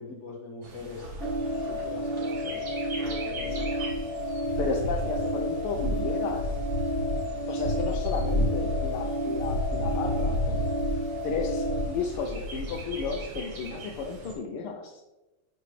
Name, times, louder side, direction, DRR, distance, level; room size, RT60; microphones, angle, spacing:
voice 1, 0.0-2.7 3.0-3.7, left 3 dB, 55° left, -2 dB, 0.8 m, -42 dB
Bird, 0.6-14.3, equal, 50° right, 1.9 m, -33 dB
sound 1, 1.2-11.9, equal, 30° left, 1.6 m, -31 dB
voice 2, 4.6-6.5 7.5-10.7 11.2-15.0, left 5 dB, 85° left, 2 dB, 1.5 m, -33 dB
11.5 x 3.9 x 3.2 m, 1.1 s
omnidirectional pair, 2.4 m